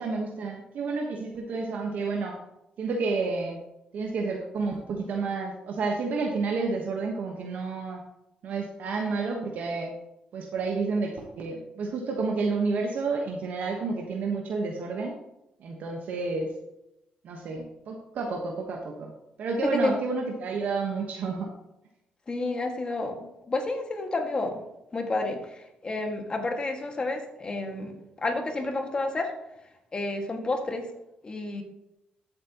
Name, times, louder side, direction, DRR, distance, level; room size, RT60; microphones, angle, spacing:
voice 1, 0.0-2.4 2.8-3.6 3.9-8.0 8.4-9.9 10.3-15.1 15.6-16.5 17.2-19.1 19.4-21.5, right 4 dB, 70° right, 1 dB, 1.2 m, -30 dB
voice 2, 19.6-20.0 22.3-24.6 24.9-27.9 28.2-29.3 29.9-30.9 31.2-31.6, left 2 dB, 30° left, 3 dB, 1.9 m, -30 dB
13.5 x 7.6 x 3.0 m, 0.88 s
cardioid pair, 85°, 3 cm